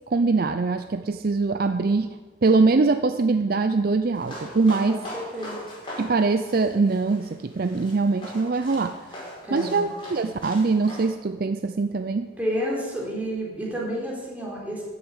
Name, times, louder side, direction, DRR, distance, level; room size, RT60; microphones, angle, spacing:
voice 1, 0.1-2.1 2.4-5.0 6.0-9.3 9.5-12.3, right 3 dB, 45° right, 9 dB, 0.5 m, -23 dB
sound 1, 4.1-11.1, equal, 25° left, 5.2 m, -41 dB
voice 2, 4.9-5.6 9.4-9.9 12.4-14.8, equal, 10° right, -5 dB, 3.9 m, -30 dB
13.0 x 8.0 x 8.3 m, 1.4 s
head